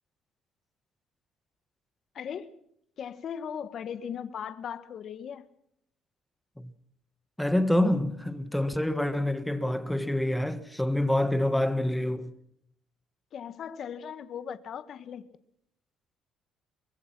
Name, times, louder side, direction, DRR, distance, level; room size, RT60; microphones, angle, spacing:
voice 1, 2.1-2.6 3.0-5.5 13.3-15.2, left 8 dB, 50° left, 1.3 m, -38 dB
voice 2, 7.4-12.3, left 1 dB, 5° left, 1.6 m, -27 dB
24.5 x 21.5 x 6.0 m
cardioid pair, 125°, 0 cm